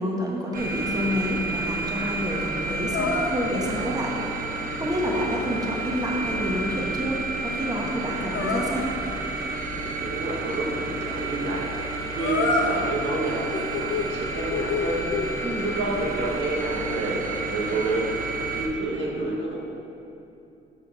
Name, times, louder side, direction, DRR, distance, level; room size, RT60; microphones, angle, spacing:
voice 1, 0.0-4.1 4.8-8.9 15.4-15.7, equal, 20° right, -2 dB, 1.2 m, -28 dB
sound 1, 0.5-18.7, right 2 dB, 45° right, 0.8 m, -31 dB
sound 2, 2.9-3.3 8.3-8.7 12.2-12.8 13.2-14.1 14.5-15.3, left 4 dB, 90° left, 0.8 m, -27 dB
voice 2, 4.9-5.4 10.0-11.7 12.1-15.1 15.6-18.1 18.5-19.6, right 2 dB, 75° right, -4 dB, 1.4 m, -29 dB
7.3 x 4.3 x 5.0 m, 2.7 s
cardioid pair, 90°, 20 cm